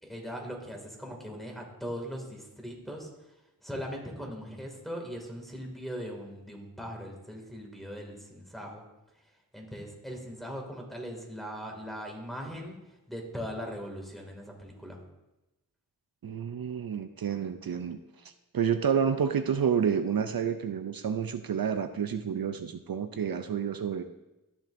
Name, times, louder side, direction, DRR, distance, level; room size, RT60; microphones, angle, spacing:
voice 1, 0.0-3.1 3.6-8.8 9.5-12.8 13.1-15.0, equal, ahead, -1 dB, 2.3 m, -40 dB
voice 2, 16.2-18.0 18.5-24.0, right 7 dB, 70° right, 8 dB, 0.5 m, -29 dB
13.5 x 7.3 x 2.6 m, 0.99 s
wide cardioid pair, 45°, 37 cm